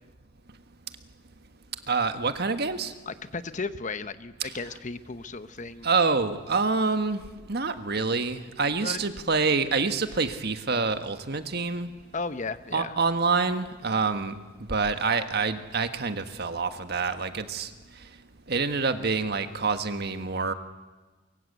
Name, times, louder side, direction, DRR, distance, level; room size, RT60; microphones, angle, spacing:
voice 1, 1.9-2.9 4.4-4.5 5.8-7.2 7.5-11.9 12.7-14.3 14.7-17.7 18.5-20.5, right 4 dB, 55° right, 8 dB, 1.6 m, -26 dB
voice 2, 3.1-5.9 8.8-9.0 12.1-12.9, left 4 dB, 40° left, 12 dB, 0.9 m, -35 dB
24.0 x 23.0 x 8.1 m, 1.3 s
head